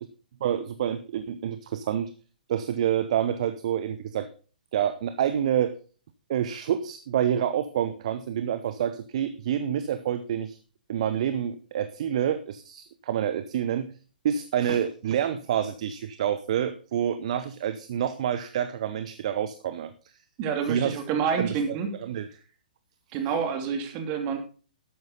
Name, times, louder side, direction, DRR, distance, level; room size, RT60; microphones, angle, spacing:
voice 1, 0.4-2.1 2.5-4.3 4.7-5.7 6.3-10.6 10.9-13.9 14.2-19.9 20.7-21.0 21.4-22.3, right 9 dB, 45° right, 11 dB, 0.8 m, -28 dB
voice 2, 20.4-21.9 23.1-24.4, right 6 dB, 30° right, 6 dB, 2.7 m, -28 dB
12.5 x 9.3 x 3.8 m, 0.38 s
figure-of-eight pair, 120°, 5 cm